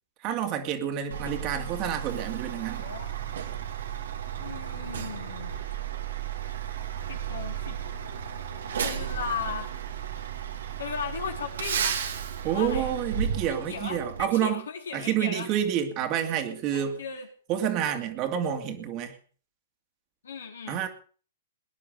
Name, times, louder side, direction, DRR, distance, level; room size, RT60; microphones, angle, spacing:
voice 1, 0.2-2.9 12.4-14.6 14.9-17.0 17.5-19.2 20.7-20.9, right 10 dB, 35° right, 6 dB, 2.5 m, -28 dB
Truck, 1.1-14.2, right 8 dB, 70° right, 2.4 m, -34 dB
voice 2, 1.2-1.7 2.4-3.1 4.4-5.5 7.1-7.8 8.8-9.7 10.8-12.0 12.4-12.9 13.5-15.5 16.7-17.3 20.2-20.8, left 6 dB, 75° left, 4 dB, 3.5 m, -37 dB
20.5 x 10.5 x 5.2 m, 0.42 s
hypercardioid pair, 120°, 0 cm